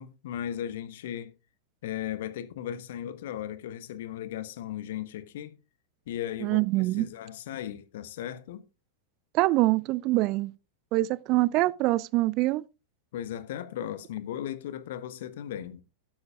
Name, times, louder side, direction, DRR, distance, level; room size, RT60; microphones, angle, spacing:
voice 1, 0.0-1.3 1.8-5.5 6.1-8.6 13.1-15.8, left 11 dB, 55° left, 1.1 m, -36 dB
voice 2, 6.4-7.1 9.3-10.5 10.9-12.6, right 19 dB, 40° right, 0.4 m, -24 dB
12.5 x 12.0 x 2.4 m
figure-of-eight pair, 90°, 0 cm